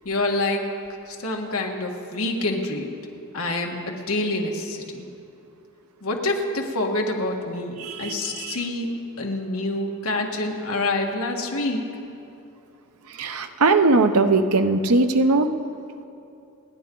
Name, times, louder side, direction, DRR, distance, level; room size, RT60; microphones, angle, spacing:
voice 1, 0.0-0.6 1.0-2.9 3.3-5.1 6.0-8.9 9.2-11.8, left 2 dB, 70° left, 1 dB, 1.7 m, -27 dB
voice 2, 7.8-8.6 13.1-15.5, right 3 dB, 80° right, 8 dB, 0.8 m, -20 dB
29.0 x 10.5 x 3.9 m, 2.6 s
head